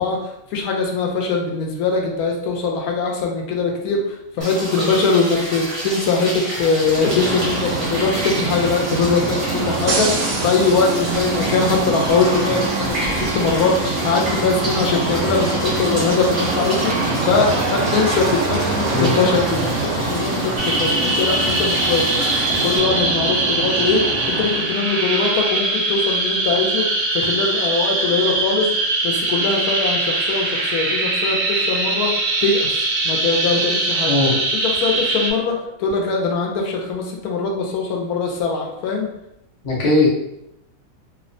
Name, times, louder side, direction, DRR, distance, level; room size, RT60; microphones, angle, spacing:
voice 1, 0.0-22.2 22.6-26.8 27.1-28.7 29.0-32.1 32.4-32.7 33.0-34.1 34.5-39.1, left 4 dB, 85° left, 1 dB, 1.1 m, -21 dB
sound 1, 4.4-22.8, right 1 dB, 35° right, 0.5 m, -29 dB
sound 2, 6.7-24.8, right 3 dB, 65° right, 0.8 m, -24 dB
sound 3, 20.6-35.3, right 2 dB, 85° right, 1.1 m, -22 dB
voice 2, 39.6-40.1, left 2 dB, 45° left, -4 dB, 0.6 m, -17 dB
2.9 x 2.1 x 2.5 m, 0.83 s
omnidirectional pair, 1.5 m